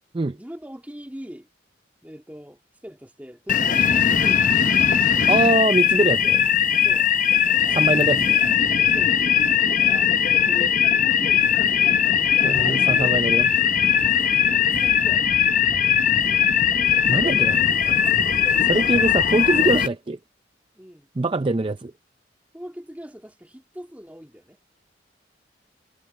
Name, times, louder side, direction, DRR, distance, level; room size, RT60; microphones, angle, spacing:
voice 1, 0.3-1.5 2.0-4.6 6.8-7.1 7.6-8.0 8.8-10.1 10.5-12.9 14.2-14.3 14.7-15.3 20.8-21.1 22.5-24.6, equal, 10° right, 1.9 m, -41 dB
sound 1, 3.5-19.9, left 8 dB, 45° left, 0.7 m, -19 dB
voice 2, 5.3-6.5 7.7-8.4 12.4-13.5 17.1-18.2 18.6-20.2 21.2-21.9, right 2 dB, 25° right, 0.4 m, -23 dB
head